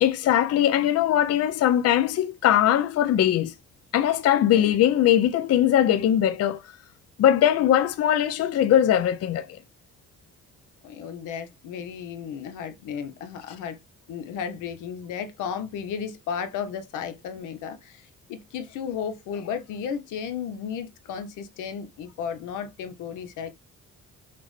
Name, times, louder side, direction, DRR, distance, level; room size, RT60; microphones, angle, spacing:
voice 1, 0.0-3.5 3.9-6.6 7.2-9.6, left 11 dB, 55° left, 0.5 m, -21 dB
voice 2, 4.4-4.8 10.8-13.8 14.1-23.5, left 7 dB, 85° left, 0.8 m, -34 dB
5.9 x 2.1 x 3.1 m
cardioid pair, 90°, 30 cm